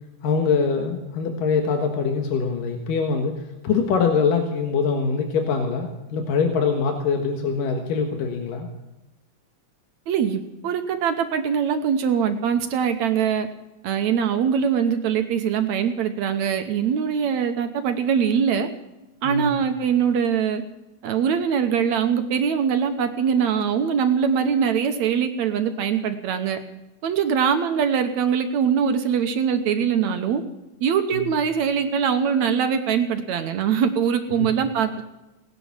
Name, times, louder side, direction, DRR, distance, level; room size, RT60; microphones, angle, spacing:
voice 1, 0.2-3.4 3.6-8.7 19.2-19.6 31.1-31.3 34.4-34.5, left 5 dB, 90° left, 4 dB, 3.1 m, -23 dB
voice 2, 10.1-13.5 13.8-18.7 19.2-20.6 21.0-26.6 27.0-30.4 30.8-35.1, right 7 dB, 65° right, 8 dB, 2.2 m, -22 dB
18.0 x 11.0 x 7.2 m, 0.98 s
omnidirectional pair, 3.7 m